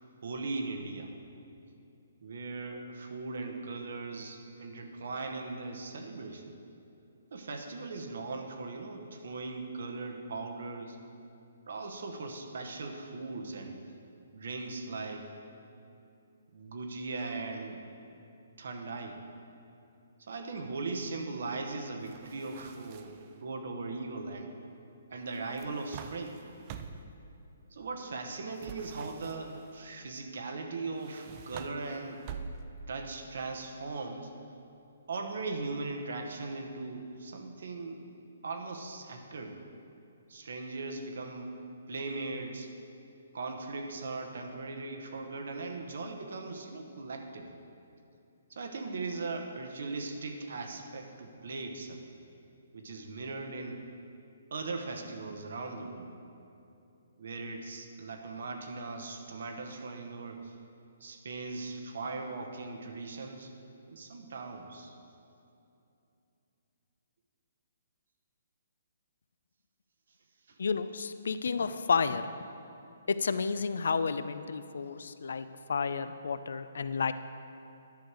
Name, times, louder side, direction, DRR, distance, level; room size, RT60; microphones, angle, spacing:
voice 1, 0.2-1.1 2.2-6.5 7.3-11.0 11.7-13.8 14.3-15.3 16.5-17.8 18.6-19.2 20.2-24.5 25.1-26.4 27.7-32.2 32.9-34.3 35.1-38.0 38.4-39.6 40.3-41.6 41.9-42.7 43.3-47.5 48.5-52.0 52.7-53.8 54.5-56.1 57.2-60.5 61.0-63.5 63.9-64.9 70.5-70.6, right 3 dB, 65° right, 4 dB, 1.0 m, -39 dB
sound 1, 22.1-23.3 25.3-27.2 28.6-29.7 30.9-32.9, right 6 dB, 25° right, 0.3 m, -46 dB
voice 2, 70.6-72.3 73.1-77.1, left 5 dB, 70° left, 12 dB, 0.4 m, -31 dB
10.5 x 6.3 x 4.8 m, 2.7 s
hypercardioid pair, 165°, 0 cm